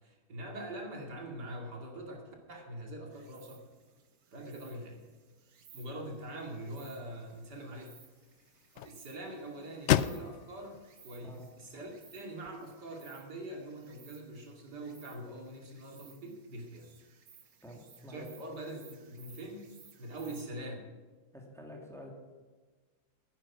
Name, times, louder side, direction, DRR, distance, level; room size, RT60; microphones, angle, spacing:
voice 1, 0.0-3.6 4.3-5.0 5.7-7.9 8.7-16.9 18.1-19.7 20.0-20.8, right 1 dB, 90° right, 1 dB, 3.1 m, -43 dB
Insect, 3.1-20.4, right 6 dB, 65° right, 1.8 m, -60 dB
sound 1, 6.3-12.5, left 11 dB, 80° left, 0.6 m, -37 dB
voice 2, 17.6-18.4 20.1-20.2 21.3-22.1, left 1 dB, ahead, -1 dB, 2.6 m, -48 dB
15.0 x 10.0 x 6.0 m, 1.4 s
omnidirectional pair, 1.8 m